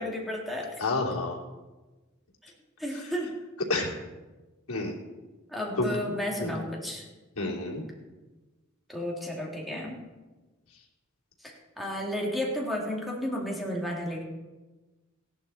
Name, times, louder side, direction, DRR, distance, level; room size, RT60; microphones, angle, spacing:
voice 1, 0.0-0.7 2.4-2.5 2.8-3.3 5.5-7.0 8.9-10.0 11.4-14.2, left 1 dB, ahead, -2 dB, 2.6 m, -32 dB
voice 2, 0.8-1.4 2.9-3.1 3.7-4.0 4.7-4.9 5.8-5.9 6.4-6.5 7.4-7.8, left 2 dB, 80° left, -2 dB, 3.0 m, -29 dB
16.5 x 11.5 x 4.3 m, 1.2 s
head